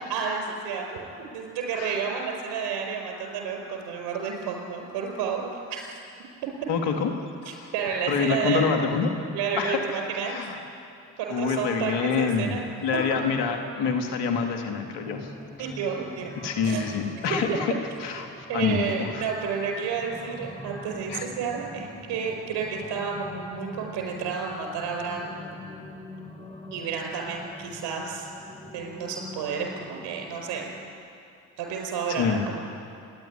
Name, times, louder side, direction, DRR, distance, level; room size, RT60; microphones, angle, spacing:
voice 1, 0.1-6.0 7.4-8.7 9.3-10.4 11.2-12.6 15.6-16.3 16.6-16.8 17.5-17.6 18.5-25.4 26.7-28.3 28.7-30.7 31.6-32.7, right 6 dB, 80° right, 2 dB, 5.0 m, -31 dB
voice 2, 6.7-7.1 7.4-7.7 8.1-9.1 9.6-9.8 10.3-10.6 11.3-15.3 16.4-17.7 18.0-19.2 21.1-21.3 32.1-32.4, left 5 dB, 85° left, 4 dB, 2.1 m, -26 dB
sound 1, 13.0-30.9, left 1 dB, 15° left, 5.0 m, -44 dB
26.5 x 11.0 x 10.0 m, 2.5 s
hypercardioid pair, 50°, 41 cm